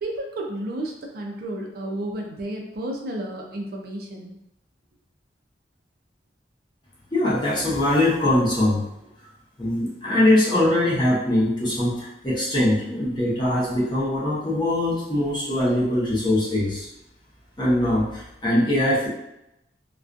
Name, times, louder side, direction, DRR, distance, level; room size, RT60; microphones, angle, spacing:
voice 1, 0.0-4.4, right 1 dB, 55° right, 1 dB, 0.4 m, -32 dB
voice 2, 7.1-8.8 9.6-16.9 17.6-19.1, left 1 dB, 25° left, -7 dB, 0.8 m, -22 dB
2.4 x 2.2 x 2.5 m, 0.85 s
head